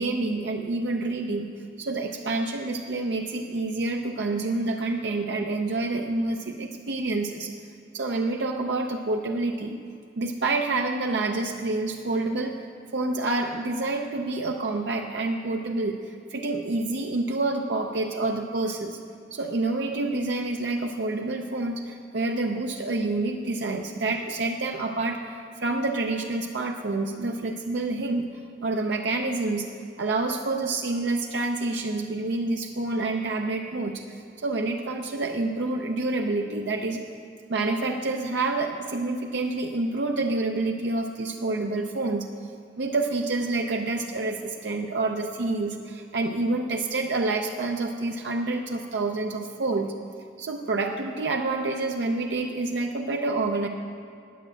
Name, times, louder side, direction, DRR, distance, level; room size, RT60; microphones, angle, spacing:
voice 1, 0.0-1.5 1.8-7.5 7.9-9.8 10.2-12.6 12.9-19.0 19.3-28.3 28.6-29.7 30.0-37.0 37.5-42.3 42.8-49.9 50.4-53.7, right 2 dB, 70° right, 3 dB, 0.6 m, -28 dB
10.0 x 8.8 x 7.5 m, 2.4 s
head